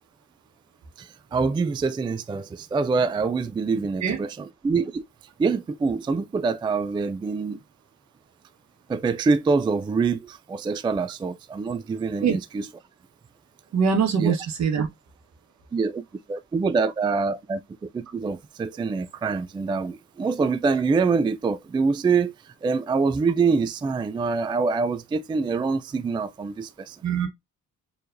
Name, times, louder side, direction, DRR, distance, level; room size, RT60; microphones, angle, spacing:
voice 1, 1.0-5.0 5.4-7.6 8.9-12.7 14.2-14.4 15.7-16.0 16.3-17.6 17.9-22.3 22.6-27.0, right 4 dB, 15° right, 0.3 m, -25 dB
voice 2, 13.7-14.9 27.0-27.3, right 6 dB, 65° right, 1.3 m, -23 dB
4.6 x 3.3 x 2.5 m
cardioid pair, 90°, 30 cm